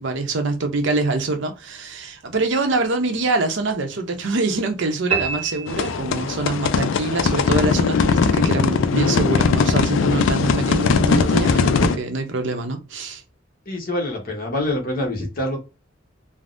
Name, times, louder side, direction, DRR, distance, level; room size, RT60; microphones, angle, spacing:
voice 1, 0.0-13.2, right 3 dB, 65° right, 0.7 m, -24 dB
sound 1, 5.1-6.6, right 6 dB, 35° right, 0.8 m, -27 dB
sound 2, 5.7-12.0, left 5 dB, 70° left, 0.3 m, -20 dB
voice 2, 13.7-15.6, left 1 dB, 50° left, 0.9 m, -25 dB
3.4 x 2.0 x 2.5 m
head